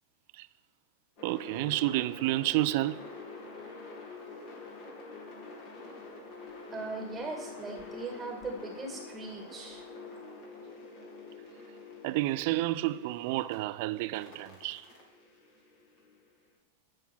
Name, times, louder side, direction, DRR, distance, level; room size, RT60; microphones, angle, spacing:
sound 1, 1.2-13.6 14.2-16.3, left 3 dB, 45° left, 3.3 m, -47 dB
voice 1, 1.2-3.1 12.0-14.8, right 17 dB, 50° right, 0.4 m, -30 dB
voice 2, 6.7-9.8, right 3 dB, 20° right, 2.2 m, -39 dB
12.5 x 4.4 x 7.6 m
figure-of-eight pair, 95°, 0 cm